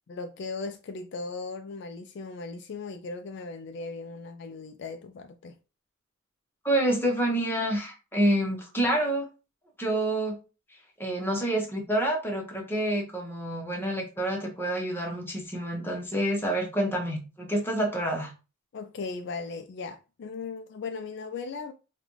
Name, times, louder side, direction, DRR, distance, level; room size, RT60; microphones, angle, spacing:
voice 1, 0.1-5.6 18.7-21.7, left 4 dB, 55° left, 0.3 m, -37 dB
voice 2, 6.6-9.3 9.8-10.4 11.0-18.3, right 1 dB, 10° left, 0.8 m, -28 dB
3.9 x 2.3 x 3.0 m
head